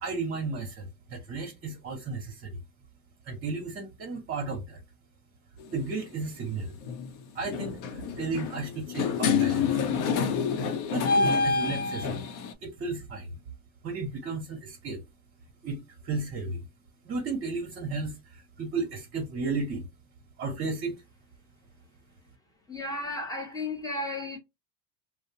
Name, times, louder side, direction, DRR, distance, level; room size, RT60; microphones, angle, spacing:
voice 1, 0.0-2.6 3.2-4.8 5.7-6.8 7.3-9.8 10.9-12.2 12.6-13.4 13.8-15.0 15.6-16.6 17.0-19.9 20.4-20.9, right 3 dB, 25° right, 0.8 m, -34 dB
sound 1, 5.6-5.9 6.8-7.1 7.4-12.5, left 5 dB, 60° left, 0.7 m, -27 dB
voice 2, 22.7-24.4, left 2 dB, 10° left, 0.6 m, -34 dB
2.6 x 2.0 x 2.7 m
supercardioid pair, 135°, 49 cm